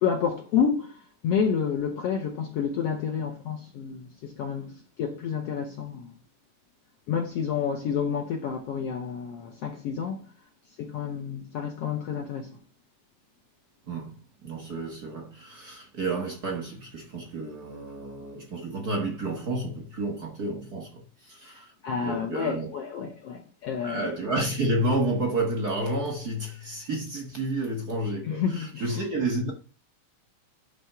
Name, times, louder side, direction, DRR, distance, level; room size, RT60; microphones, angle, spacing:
voice 1, 0.0-6.1 7.1-10.3 10.8-12.6 21.5-24.1 28.2-29.0, left 7 dB, 70° left, 1.5 m, -29 dB
voice 2, 13.9-21.7 22.0-22.7 23.8-29.5, right 2 dB, 55° right, 1.0 m, -30 dB
11.0 x 3.7 x 5.6 m
omnidirectional pair, 3.9 m